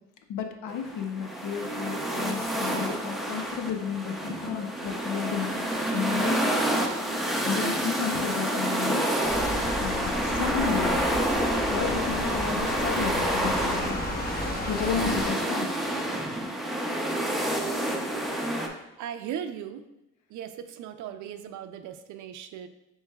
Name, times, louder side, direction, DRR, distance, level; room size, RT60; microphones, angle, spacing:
voice 1, 0.3-5.6 5.9-6.5 7.4-9.1 9.8-11.0 11.7-14.0 14.7-15.7, left 7 dB, 80° left, 5 dB, 0.7 m, -32 dB
sound 1, 0.7-18.7, right 1 dB, ahead, 0.6 m, -28 dB
sound 2, 9.2-15.3, left 1 dB, 30° left, 0.9 m, -33 dB
voice 2, 17.6-18.3 19.0-19.8 20.3-22.7, right 9 dB, 75° right, 9 dB, 0.5 m, -38 dB
7.2 x 3.1 x 2.3 m, 0.94 s
cardioid pair, 90°, 30 cm